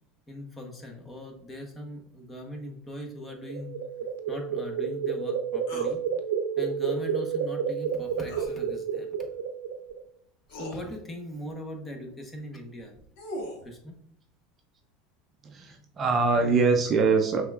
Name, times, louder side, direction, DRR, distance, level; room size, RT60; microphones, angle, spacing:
voice 1, 0.3-3.8 4.3-6.0 6.6-9.1 10.5-12.9 13.6-14.0, left 1 dB, 15° left, 3 dB, 1.0 m, -40 dB
sound 1, 3.3-10.0, right 7 dB, 90° right, 0.6 m, -30 dB
sound 2, 5.7-6.0 8.3-8.5 9.9-10.0 10.5-10.8 12.8-13.6, equal, 75° left, 1.3 m, -38 dB
voice 2, 15.4-17.4, right 4 dB, 30° right, 4 dB, 0.5 m, -23 dB
5.6 x 3.4 x 2.4 m, 0.66 s
supercardioid pair, 135°, 0 cm